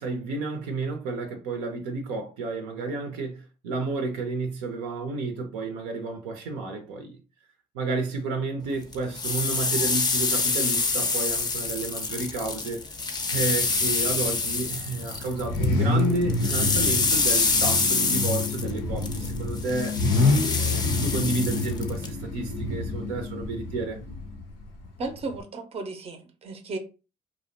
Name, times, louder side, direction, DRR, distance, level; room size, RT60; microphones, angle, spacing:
voice 1, 0.0-7.2 7.7-12.8 13.3-19.9 20.6-24.0, right 3 dB, 75° right, 0.6 m, -31 dB
sound 1, 8.9-15.7 16.0-22.1, left 4 dB, 20° left, 0.5 m, -26 dB
Car / Idling / Accelerating revving vroom, 13.3-25.4, left 3 dB, 80° left, 0.5 m, -28 dB
voice 2, 25.0-26.8, right 3 dB, 30° right, 0.6 m, -34 dB
2.6 x 2.0 x 2.5 m
hypercardioid pair, 55°, 20 cm